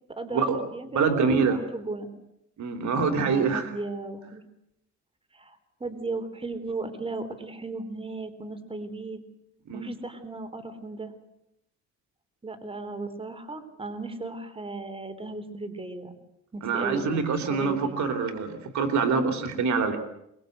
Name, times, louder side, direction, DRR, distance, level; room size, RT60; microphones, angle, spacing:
voice 1, 0.1-0.5 0.7-2.1 3.2-4.4 5.3-9.2 9.7-11.1 12.4-16.1 16.5-18.0, right 3 dB, 20° right, 8 dB, 3.9 m, -36 dB
voice 2, 0.9-1.6 2.6-3.7 9.7-9.9 16.6-20.0, right 5 dB, 70° right, 7 dB, 3.3 m, -25 dB
24.0 x 22.5 x 8.0 m, 0.81 s
cardioid pair, 90°, 30 cm